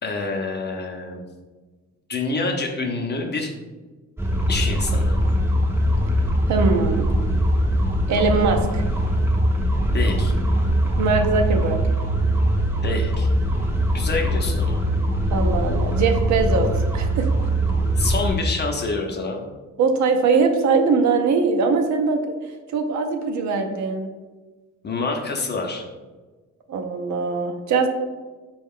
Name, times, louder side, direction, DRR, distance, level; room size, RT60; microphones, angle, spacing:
voice 1, 0.0-1.2 2.1-3.5 4.5-5.2 9.9-10.3 12.8-13.3 13.9-14.8 18.0-19.4 24.8-25.9, left 3 dB, 35° left, 3 dB, 0.7 m, -27 dB
sound 1, 4.2-18.3, equal, 10° right, 0.5 m, -21 dB
voice 2, 6.5-7.1 8.1-8.8 11.0-11.8 15.3-16.7 16.9-17.3 19.8-22.2 22.7-24.1 26.7-27.9, right 4 dB, 70° right, 4 dB, 0.6 m, -21 dB
4.2 x 2.3 x 3.6 m, 1.3 s
cardioid pair, 90°, 30 cm